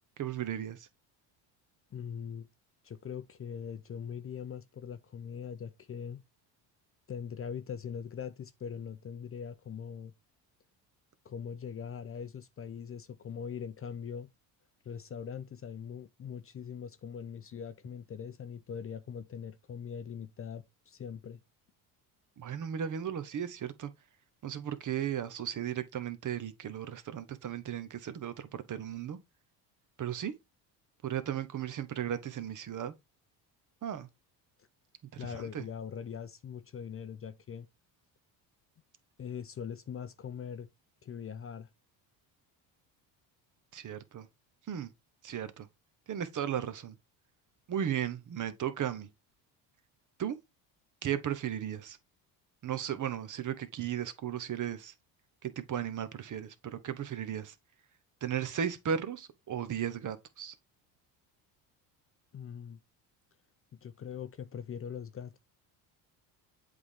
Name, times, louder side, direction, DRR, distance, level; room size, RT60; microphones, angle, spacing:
voice 1, 0.2-0.9 22.4-23.9 24.4-29.2 30.0-30.3 31.0-32.9 33.8-34.1 35.1-35.6 43.7-44.3 44.7-44.9 45.2-45.7 46.1-47.0 47.7-49.1 50.2-50.4 51.0-52.0 52.6-54.9 55.4-57.5 58.2-60.5, right 9 dB, 40° right, 0.9 m, -35 dB
voice 2, 1.9-2.5 2.8-6.2 7.1-10.1 11.2-14.3 14.8-21.4 35.2-37.7 39.2-40.7 41.0-41.7 62.3-62.8 63.8-65.4, left 7 dB, 30° left, 0.6 m, -41 dB
7.8 x 3.4 x 3.6 m
supercardioid pair, 85°, 46 cm